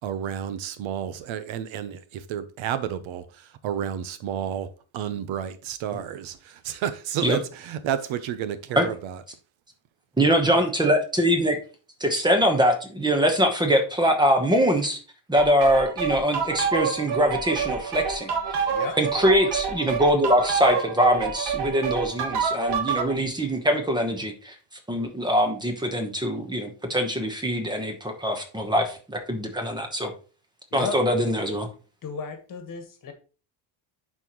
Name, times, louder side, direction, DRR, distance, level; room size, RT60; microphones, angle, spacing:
voice 1, 0.0-4.7 4.9-9.2, right 9 dB, 75° right, 0.9 m, -31 dB
voice 2, 10.2-11.6 12.0-15.0 15.3-18.6 19.0-24.6 24.9-30.1 30.7-31.7, equal, 10° right, 1.1 m, -23 dB
sound 1, 15.4-23.1, right 6 dB, 55° right, 1.3 m, -27 dB
voice 3, 30.7-31.0 32.0-33.1, left 5 dB, 40° left, 1.5 m, -34 dB
10.5 x 4.4 x 3.1 m
cardioid pair, 160°, 48 cm